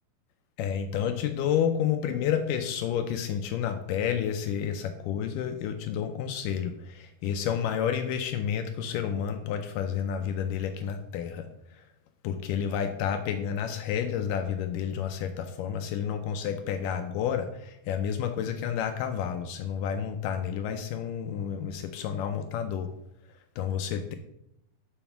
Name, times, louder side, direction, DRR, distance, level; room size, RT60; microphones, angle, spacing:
voice 1, 0.6-11.5 12.2-22.9 23.6-24.1, left 8 dB, 80° left, 7 dB, 2.0 m, -30 dB
7.1 x 4.9 x 5.8 m, 0.80 s
omnidirectional pair, 4.2 m